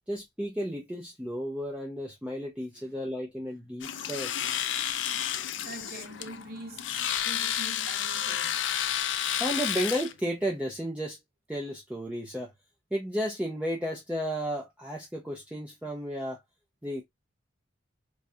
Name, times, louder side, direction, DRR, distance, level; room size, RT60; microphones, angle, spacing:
voice 1, 0.1-4.3 9.4-11.2 11.5-12.5 12.9-16.4 16.8-17.0, equal, 5° right, 0.5 m, -33 dB
Domestic sounds home sounds, 3.8-10.1, left 10 dB, 75° left, 0.4 m, -31 dB
voice 2, 5.1-8.7, right 1 dB, 55° right, 0.7 m, -45 dB
4.6 x 2.3 x 2.6 m
head